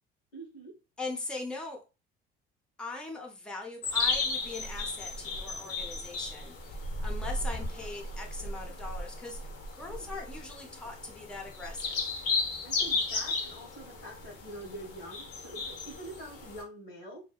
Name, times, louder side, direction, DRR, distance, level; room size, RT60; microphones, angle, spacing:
voice 1, 0.3-0.7 9.8-10.1 12.6-17.2, right 1 dB, 80° left, 0 dB, 1.1 m, -45 dB
voice 2, 1.0-1.8 2.8-9.4 9.7-12.1, left 3 dB, 5° left, 0 dB, 0.6 m, -40 dB
sound 1, 3.8-16.6, left 3 dB, 50° left, 0.7 m, -35 dB
2.7 x 2.1 x 2.3 m, 0.29 s
hypercardioid pair, 65°, 29 cm